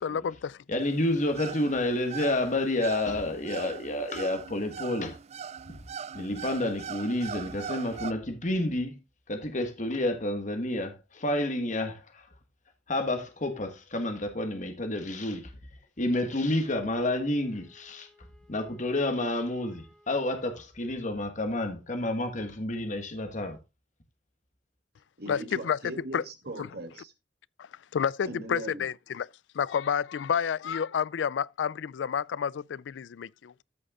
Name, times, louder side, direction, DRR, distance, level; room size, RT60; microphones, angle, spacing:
voice 1, 0.0-0.6 25.3-25.8 26.1-26.2 26.6-26.7 27.6-29.3 29.5-33.6, left 7 dB, 85° left, 0.4 m, -30 dB
voice 2, 0.7-5.2 6.1-9.0 9.3-12.2 12.9-15.5 16.0-18.1 18.5-23.6, left 1 dB, 45° left, 1.6 m, -29 dB
sound 1, 0.8-8.1, right 7 dB, 35° right, 0.4 m, -41 dB
Wind instrument woodwind instrument, 16.1-20.6, equal, 5° left, 2.5 m, -61 dB
voice 3, 25.2-27.1 28.2-28.9, right 2 dB, 60° right, 2.6 m, -40 dB
14.0 x 6.5 x 2.4 m
head